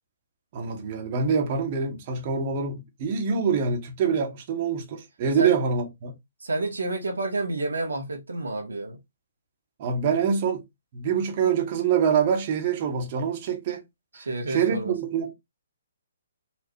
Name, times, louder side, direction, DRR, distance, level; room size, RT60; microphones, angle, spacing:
voice 1, 0.5-6.1 9.8-10.6 10.9-13.8 14.1-15.3, right 6 dB, 40° right, 0.9 m, -25 dB
voice 2, 6.4-9.0 14.1-14.9, right 2 dB, 75° right, 0.9 m, -29 dB
4.2 x 2.3 x 2.8 m
figure-of-eight pair, 130°, 0 cm